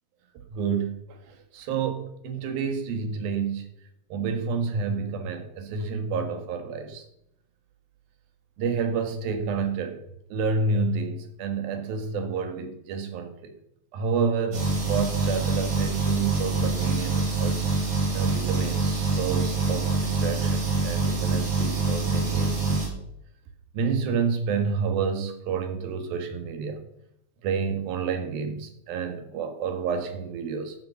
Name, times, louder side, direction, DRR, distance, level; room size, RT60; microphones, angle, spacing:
voice 1, 0.5-1.2 1.5-3.6 4.1-7.0 8.6-10.0 10.3-13.5 13.9-17.6 18.1-23.0 23.7-26.8 27.4-30.8, right 5 dB, 80° right, 7 dB, 3.4 m, -29 dB
sound 1, 14.5-22.9, right 3 dB, 55° right, 5.2 m, -25 dB
12.0 x 8.2 x 6.9 m, 0.78 s
omnidirectional pair, 4.1 m